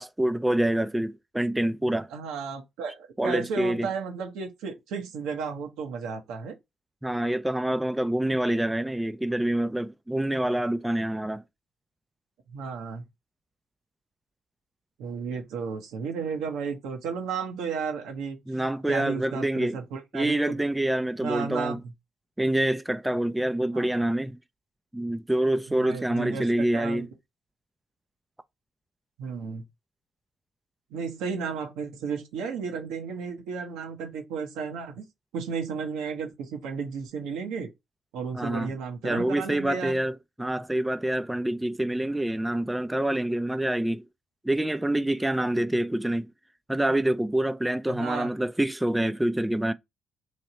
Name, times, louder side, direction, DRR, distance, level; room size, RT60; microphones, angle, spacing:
voice 1, 0.0-2.1 3.2-3.9 7.0-11.4 18.5-19.8 20.1-21.8 22.4-24.4 24.9-27.1 38.3-38.7 39.0-44.0 44.4-46.3 46.7-49.7, right 1 dB, 10° right, 0.4 m, -26 dB
voice 2, 2.1-6.6 12.5-13.0 15.0-18.4 18.9-20.6 21.2-21.8 23.7-23.9 25.7-26.5 26.7-27.1 29.2-29.6 30.9-35.1 35.3-37.7 38.1-40.0 47.9-48.3, right 6 dB, 85° right, 0.9 m, -33 dB
3.2 x 2.8 x 4.1 m
supercardioid pair, 60°, 0 cm